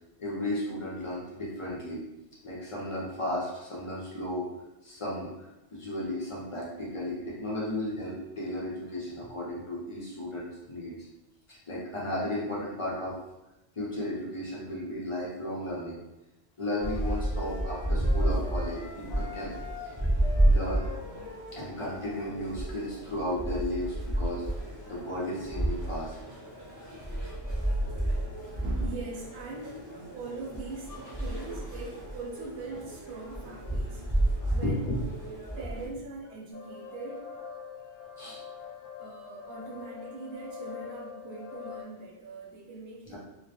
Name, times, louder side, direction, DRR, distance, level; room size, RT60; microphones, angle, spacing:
voice 1, 0.2-2.0 2.4-4.4 4.8-10.9 11.5-13.2 13.7-16.0 16.6-19.5 20.4-20.9 21.5-24.4 24.9-26.2 34.6-35.0 38.2-38.4, left 1 dB, 45° left, -6 dB, 0.4 m, -34 dB
sound 1, 16.6-22.4, left 5 dB, 65° left, 0.8 m, -45 dB
sound 2, 16.8-35.9, right 1 dB, 30° right, 0.3 m, -31 dB
voice 2, 28.6-34.9 35.6-37.3 39.0-43.2, right 3 dB, 70° right, -2 dB, 0.8 m, -41 dB
sound 3, 36.5-41.8, left 6 dB, 15° right, 0.7 m, -43 dB
2.3 x 2.0 x 2.7 m, 0.96 s
omnidirectional pair, 1.2 m